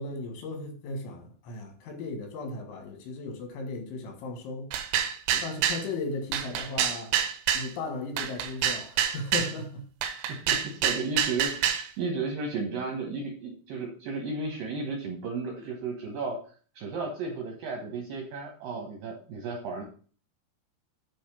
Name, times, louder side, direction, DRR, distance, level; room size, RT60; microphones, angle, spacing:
voice 1, 0.0-4.7 5.4-7.2 7.5-9.9, left 3 dB, 85° left, 4.1 m, -36 dB
sound 1, 4.7-5.9 6.3-7.7 8.2-9.5 10.0-11.9, right 9 dB, 85° right, 3.1 m, -27 dB
voice 2, 10.3-16.4 16.8-19.8, right 3 dB, 70° right, 2.2 m, -34 dB
9.4 x 3.5 x 5.9 m
omnidirectional pair, 5.3 m